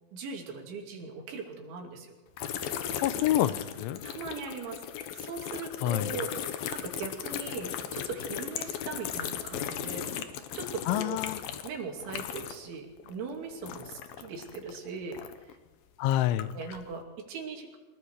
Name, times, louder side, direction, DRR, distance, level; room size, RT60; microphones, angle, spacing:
voice 1, 0.1-2.2 4.0-4.8 5.2-10.1 10.5-11.2 11.6-15.2 16.5-17.8, right 4 dB, 80° right, 2 dB, 5.2 m, -39 dB
sound 1, 2.4-12.7 13.0-15.5 16.0-16.9, left 9 dB, 70° left, 2.5 m, -37 dB
voice 2, 3.0-4.0 5.8-6.1 10.9-11.4 16.0-16.5, left 13 dB, 90° left, 13 dB, 3.3 m, -27 dB
25.0 x 22.0 x 4.8 m, 1.2 s
omnidirectional pair, 5.3 m